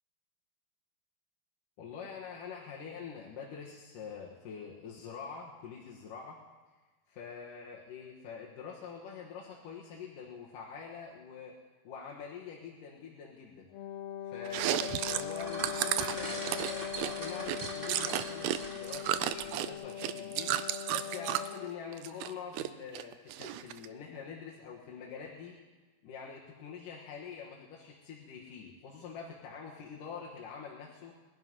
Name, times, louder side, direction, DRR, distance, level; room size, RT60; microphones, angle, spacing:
voice 1, 1.8-6.4 7.1-11.5 11.8-13.7 14.2-20.5 20.9-25.6 26.0-31.2, left 6 dB, 65° left, -4 dB, 3.0 m, -45 dB
Wind instrument woodwind instrument, 13.7-21.9, left 9 dB, 85° left, 2.6 m, -41 dB
Chewing mastication, 14.5-18.6 18.9-21.5 21.9-22.7 23.0-23.9, right 13 dB, 90° right, 2.5 m, -33 dB
sound 1, 14.9-19.5, right 2 dB, 25° right, 1.1 m, -42 dB
21.0 x 11.0 x 5.4 m, 1.3 s
omnidirectional pair, 4.2 m